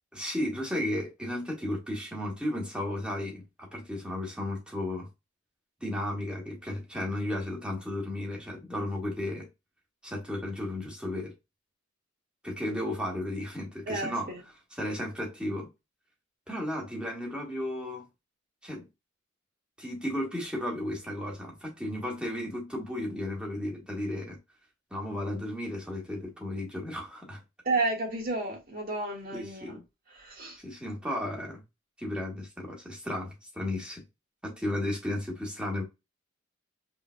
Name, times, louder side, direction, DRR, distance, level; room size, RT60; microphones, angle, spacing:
voice 1, 0.1-5.1 5.8-9.5 10.0-11.3 12.4-14.3 14.8-15.7 16.5-18.1 18.6-18.9 19.8-24.4 24.9-27.4 29.3-29.8 30.6-31.6 32.0-34.0 34.4-35.8, left 1 dB, 5° right, 1.5 m, -34 dB
voice 2, 13.9-14.4 27.6-29.8 30.1-30.6, right 3 dB, 45° right, 1.7 m, -32 dB
5.2 x 3.3 x 2.2 m
head